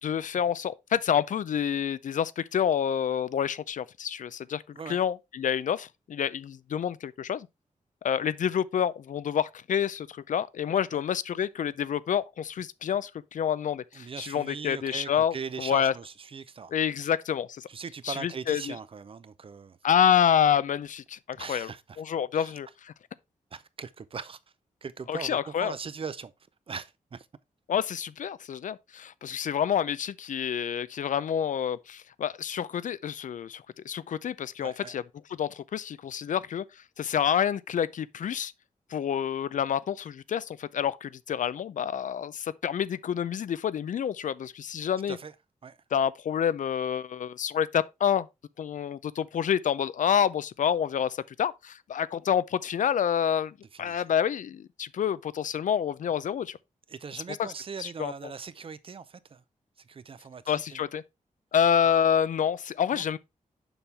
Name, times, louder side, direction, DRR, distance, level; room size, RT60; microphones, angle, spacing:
voice 1, 0.0-7.5 8.0-15.9 16.7-17.7 18.0-18.7 19.8-21.7 22.0-22.9 25.1-25.7 27.7-35.0 35.4-36.6 37.0-38.5 38.9-45.2 45.9-48.3 48.6-56.6 57.4-57.5 57.8-58.1 60.5-61.0 61.5-63.2, left 8 dB, 70° left, 0.4 m, -28 dB
voice 2, 13.9-16.7 17.0-17.1 17.7-19.8 21.4-22.0 22.3-22.5 23.5-24.4 24.8-26.3 26.7-27.3 34.6-35.0 45.1-45.3 45.6-45.8 53.7-54.1 56.9-59.4 59.8-60.8 61.8-61.9 62.9-63.0, right 5 dB, 40° right, 0.5 m, -40 dB
7.0 x 5.5 x 3.3 m
wide cardioid pair, 145°, 14 cm